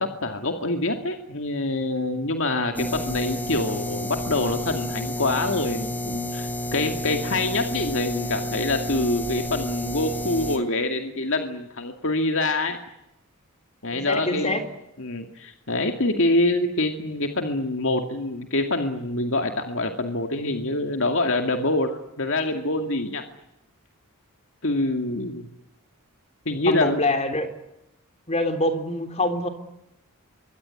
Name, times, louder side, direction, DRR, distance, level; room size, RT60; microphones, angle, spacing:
voice 1, 0.0-12.8 13.8-14.6 15.0-23.2 24.6-25.5 26.5-27.0, left 2 dB, 60° left, 5 dB, 2.3 m, -25 dB
sound 1, 2.8-10.6, left 1 dB, 10° left, 3.0 m, -30 dB
voice 2, 13.9-14.6 26.6-27.5 28.3-29.5, left 1 dB, 30° left, 7 dB, 3.4 m, -25 dB
25.5 x 23.0 x 9.9 m, 0.88 s
head